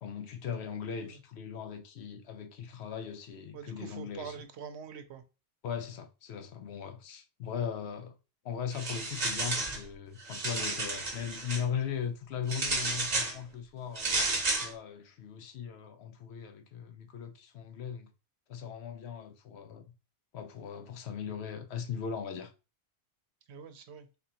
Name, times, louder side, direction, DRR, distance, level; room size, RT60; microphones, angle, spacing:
voice 1, 0.0-4.3 5.6-8.2 8.4-14.2 14.6-18.1 18.5-19.9 20.3-22.5, left 7 dB, 80° left, 0.9 m, -39 dB
voice 2, 3.5-5.2 23.5-24.1, right 6 dB, 80° right, 0.9 m, -44 dB
sound 1, 8.7-9.8 10.2-11.6 12.5-13.4 14.0-14.7, right 3 dB, 40° right, 0.9 m, -32 dB
3.7 x 3.5 x 2.8 m
omnidirectional pair, 1.1 m